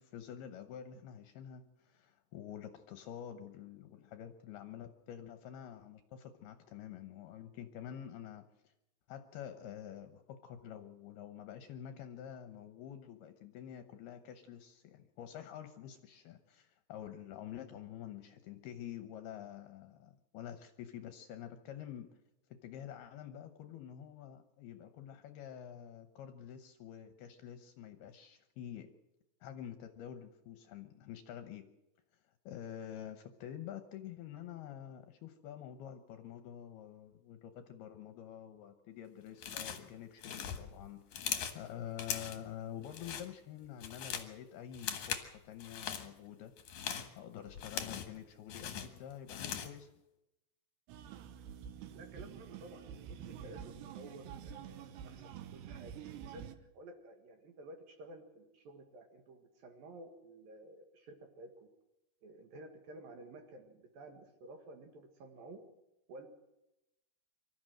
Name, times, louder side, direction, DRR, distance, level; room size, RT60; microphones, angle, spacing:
voice 1, 0.0-8.7 9.1-22.1 22.5-28.9 29.4-31.6 32.5-46.5 47.1-49.9, left 10 dB, 75° left, 8 dB, 2.5 m, -48 dB
sound 1, 39.4-39.9 40.2-41.6 42.0-42.5 42.8-43.3 43.6-44.3 44.7-45.3 45.6-46.1 46.6-48.2 48.5-49.8, left 8 dB, 55° left, 2.2 m, -40 dB
sound 2, 50.9-56.6, right 9 dB, 75° right, 3.0 m, -48 dB
voice 2, 51.9-61.7 62.2-65.6 66.1-66.3, right 2 dB, 60° right, 5 dB, 3.0 m, -53 dB
25.0 x 13.5 x 7.7 m, 0.92 s
omnidirectional pair, 5.4 m